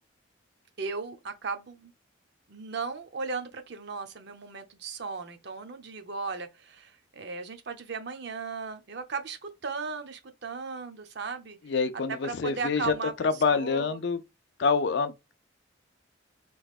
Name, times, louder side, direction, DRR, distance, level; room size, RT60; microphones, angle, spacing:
voice 1, 0.8-1.9 2.5-11.6 12.1-14.0, right 4 dB, 60° right, 0.6 m, -36 dB
voice 2, 11.7-12.9 13.2-14.2 14.6-15.3, left 5 dB, 60° left, 0.4 m, -26 dB
3.5 x 3.1 x 2.4 m
head